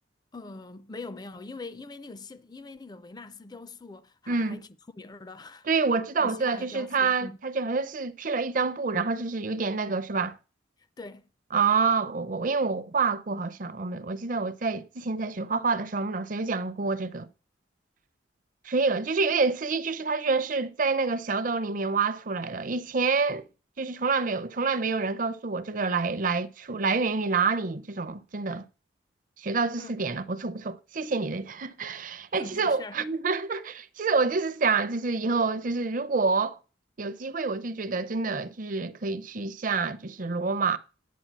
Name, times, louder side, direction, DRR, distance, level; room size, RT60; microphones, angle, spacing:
voice 1, 0.3-4.7 5.0-5.7 6.2-7.4 11.0-11.3 29.8-30.0 32.3-33.1, left 3 dB, 20° left, 0.4 m, -43 dB
voice 2, 4.3-4.6 5.7-10.4 11.5-17.3 18.6-23.5 23.8-28.6 29.4-36.6 37.0-40.8, right 4 dB, 45° right, 0.6 m, -27 dB
9.3 x 4.4 x 7.4 m
head